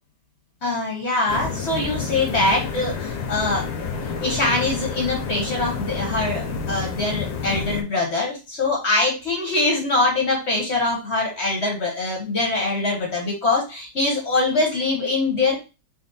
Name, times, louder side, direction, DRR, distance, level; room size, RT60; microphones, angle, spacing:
voice 1, 0.6-3.7 4.2-15.6, left 2 dB, 50° left, -1 dB, 0.9 m, -23 dB
sound 1, 1.3-7.8, left 5 dB, 75° left, 1.4 m, -29 dB
4.1 x 2.1 x 3.9 m, 0.30 s
omnidirectional pair, 2.1 m